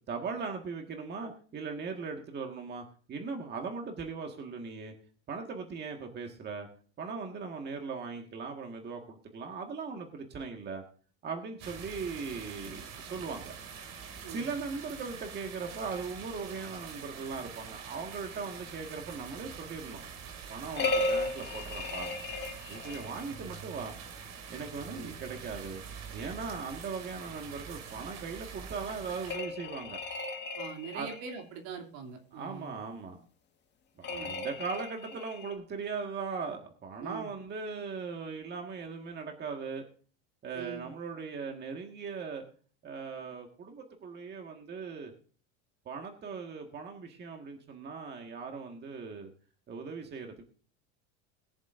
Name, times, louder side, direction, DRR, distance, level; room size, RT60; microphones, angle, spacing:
voice 1, 0.1-4.9 5.3-6.7 7.0-10.8 11.2-13.5 14.3-20.0 20.5-22.1 22.7-23.9 24.5-25.8 26.1-30.0 30.9-31.1 32.3-33.2 34.0-39.8 40.4-42.4 42.8-45.1 45.8-49.3 49.7-50.4, right 5 dB, 30° right, 3 dB, 1.7 m, -39 dB
sound 1, 11.6-29.3, right 6 dB, 45° right, 2.4 m, -45 dB
voice 2, 14.2-14.5 23.3-23.4 24.9-25.2 30.6-32.8 34.1-34.3 37.0-37.3 40.5-40.9, right 6 dB, 65° right, 3 dB, 2.8 m, -43 dB
sound 2, 20.8-23.2 29.3-31.4 34.0-35.5, left 2 dB, 30° left, 1.6 m, -35 dB
21.5 x 7.3 x 2.6 m, 0.41 s
supercardioid pair, 130°, 36 cm